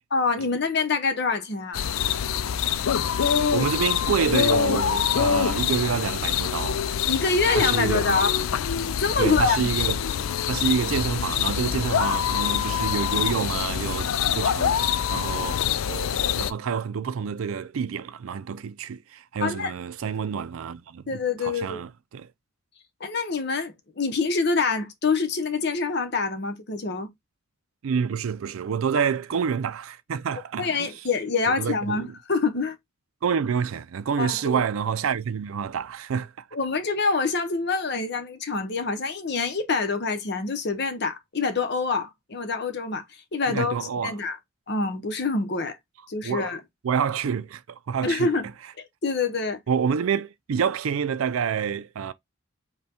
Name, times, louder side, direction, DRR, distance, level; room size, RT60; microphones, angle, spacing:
voice 1, 0.1-1.8 7.1-8.3 9.0-9.6 19.4-19.7 21.1-21.8 23.0-27.1 30.6-32.8 34.2-34.6 36.5-43.0 43.3-43.7 44.0-44.4 44.7-45.8 46.1-46.6 48.0-48.5 48.8-49.6, left 4 dB, 55° left, 0.8 m, -26 dB
sound 1, 1.7-16.5, left 8 dB, 90° left, 0.4 m, -25 dB
voice 2, 3.2-6.8 7.5-8.2 9.2-10.0 10.5-14.8 15.1-15.6 15.9-22.3 27.8-30.9 31.6-32.1 33.2-36.3 43.5-44.2 46.2-46.5 46.8-48.3 49.7-52.1, right 6 dB, 90° right, 0.4 m, -28 dB
5.5 x 2.3 x 4.2 m
head